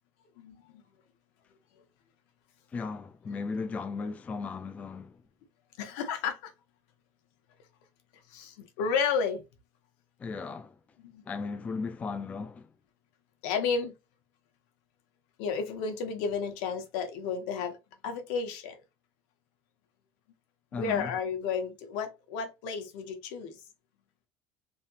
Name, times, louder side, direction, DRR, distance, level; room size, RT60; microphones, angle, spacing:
voice 1, 0.4-0.8 5.8-6.5 8.3-9.4 11.0-11.2 13.4-13.9 15.4-17.8 18.0-18.8 20.7-23.6, left 6 dB, 90° left, 1.0 m, -32 dB
voice 2, 2.7-5.2 10.2-10.8 11.2-12.7 20.7-21.1, left 4 dB, 20° left, 0.3 m, -36 dB
3.2 x 2.8 x 2.8 m
cardioid pair, 145°, 7 cm